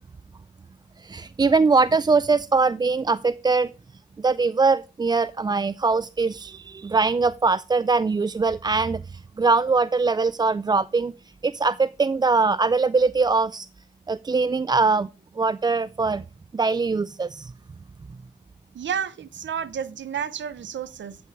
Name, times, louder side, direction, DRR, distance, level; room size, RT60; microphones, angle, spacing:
voice 1, 1.0-3.7 4.2-11.1 11.4-13.7 14.1-15.1 15.4-16.2 16.5-17.5, right 4 dB, 20° right, 0.3 m, -22 dB
voice 2, 18.7-21.2, right 8 dB, 70° right, 0.8 m, -31 dB
9.0 x 6.0 x 4.6 m
cardioid pair, 50°, 20 cm